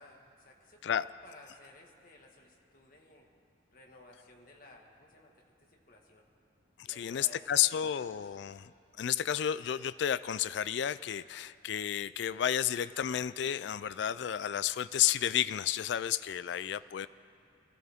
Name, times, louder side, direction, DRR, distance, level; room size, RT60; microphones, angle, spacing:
voice 1, 0.0-3.3 3.7-5.3 5.9-6.2 6.9-7.9 17.0-17.1, left 2 dB, 45° left, 0 dB, 1.6 m, -56 dB
voice 2, 7.0-8.6 9.0-17.1, left 10 dB, 70° left, 17 dB, 0.3 m, -31 dB
22.5 x 14.5 x 3.6 m, 2.5 s
head